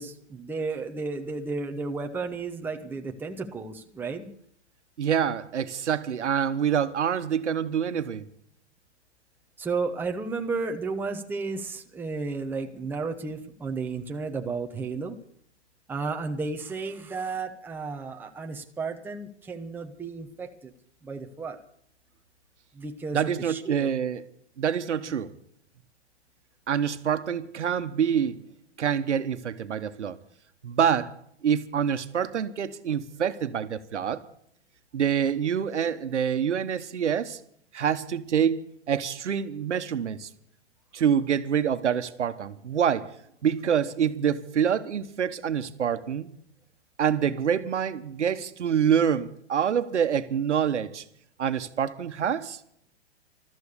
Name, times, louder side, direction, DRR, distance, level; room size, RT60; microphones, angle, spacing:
voice 1, 0.0-4.3 9.6-15.2 15.9-20.7 21.0-21.6 22.7-23.9, right 4 dB, 5° right, 1.0 m, -33 dB
voice 2, 5.0-8.3 23.1-24.2 24.6-25.3 26.7-28.4 28.8-30.2 30.6-31.1 31.4-34.2 34.9-37.4 37.7-40.3 40.9-43.1 43.4-46.3 47.0-51.0 51.4-52.6, right 8 dB, 80° right, 1.3 m, -26 dB
14.0 x 13.0 x 6.8 m
hypercardioid pair, 140°, 34 cm